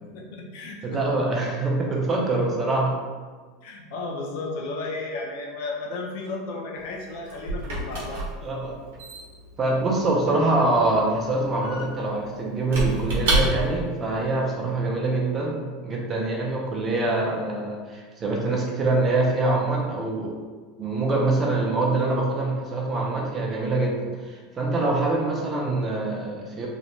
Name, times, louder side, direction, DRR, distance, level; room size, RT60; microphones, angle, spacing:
voice 1, 0.0-1.0 3.6-8.2, left 3 dB, 55° left, 0 dB, 0.5 m, -34 dB
voice 2, 0.8-2.9 8.4-8.7 9.6-20.3 20.8-26.7, right 2 dB, 20° right, -2 dB, 0.4 m, -24 dB
Squeak / Wood, 6.8-13.9, right 2 dB, 90° right, 0.7 m, -30 dB
2.9 x 2.1 x 2.6 m, 1.5 s
supercardioid pair, 170°, 0 cm